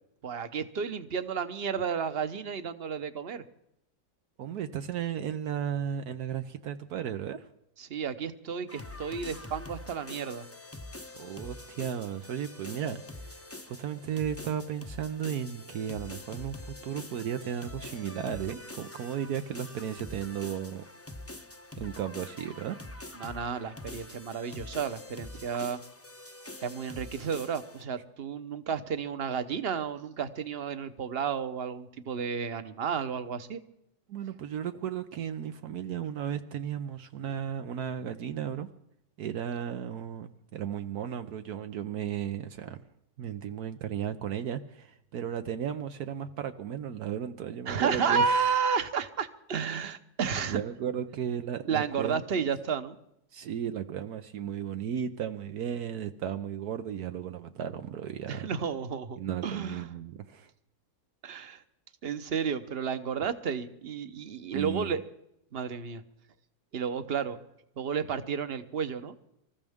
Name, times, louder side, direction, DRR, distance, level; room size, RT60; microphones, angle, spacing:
voice 1, 0.2-3.4 7.8-10.5 23.1-25.8 26.6-33.6 47.7-50.6 51.7-53.0 58.3-59.9 61.2-61.6 62.0-65.0 65.5-66.0 66.7-67.4 67.8-69.1, right 6 dB, 45° right, 11 dB, 1.0 m, -32 dB
voice 2, 4.4-7.5 11.1-20.8 21.8-22.8 34.1-38.7 39.2-42.8 43.2-48.4 50.5-52.5 53.3-58.5 59.2-60.5 64.5-65.0, right 9 dB, 75° right, 8 dB, 1.3 m, -35 dB
sound 1, 8.7-27.8, left 2 dB, 15° left, 0.6 m, -45 dB
26.0 x 14.5 x 3.6 m, 0.79 s
omnidirectional pair, 1.7 m